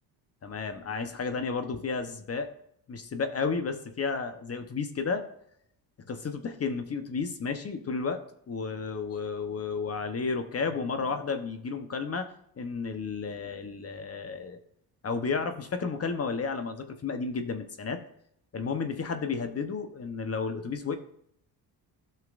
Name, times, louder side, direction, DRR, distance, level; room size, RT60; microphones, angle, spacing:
voice 1, 0.4-2.5 2.9-5.2 6.1-12.3 12.6-14.6 15.0-18.0 18.5-21.0, left 4 dB, 35° left, 8 dB, 1.0 m, -32 dB
12.5 x 5.7 x 2.5 m, 0.71 s
cardioid pair, 90°, 42 cm